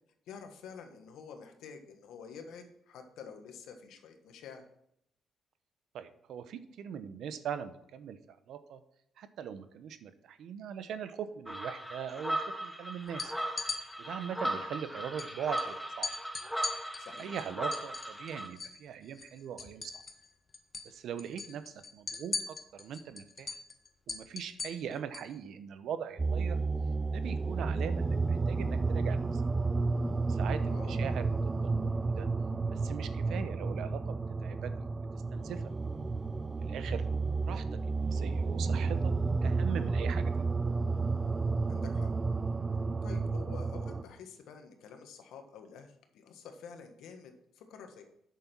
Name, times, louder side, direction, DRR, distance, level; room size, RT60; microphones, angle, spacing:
voice 1, 0.3-4.6 17.0-17.3 30.6-31.1 41.7-42.1 43.0-48.0, left 6 dB, 80° left, 6 dB, 1.5 m, -49 dB
voice 2, 5.9-8.8 9.2-13.3 14.0-16.1 17.2-20.0 20.8-23.6 24.1-26.6 27.1-29.4 30.3-32.3 32.7-34.0 34.4-34.7 35.3-35.6 36.6-37.0 37.4-39.1 39.4-40.3, right 8 dB, 75° right, 11 dB, 0.9 m, -41 dB
sound 1, 11.5-18.5, right 1 dB, ahead, 1.3 m, -37 dB
sound 2, 13.1-13.8 15.2-15.3 15.6-15.7 16.0-18.8 19.1-20.3 20.5-20.9 21.2-25.3, left 4 dB, 35° left, 1.4 m, -39 dB
sound 3, 26.2-44.0, right 3 dB, 25° right, 0.5 m, -31 dB
8.4 x 6.6 x 6.0 m, 0.75 s
cardioid pair, 90°, 0 cm